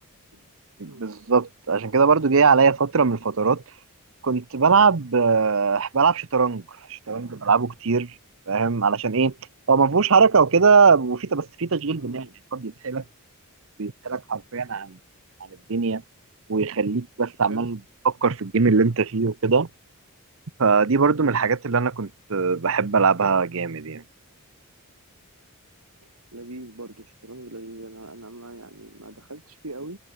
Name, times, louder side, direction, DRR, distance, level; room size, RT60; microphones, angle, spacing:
voice 1, 0.8-3.6 4.2-6.6 6.9-8.1 8.5-9.3 9.7-12.3 12.5-13.0 13.8-15.0 15.7-16.0 16.5-17.8 18.0-19.7 20.6-24.0, right 5 dB, 65° right, 0.8 m, -21 dB
voice 2, 12.0-12.3 17.4-17.7 21.2-21.4 26.3-30.0, right 2 dB, 90° right, 5.4 m, -41 dB
head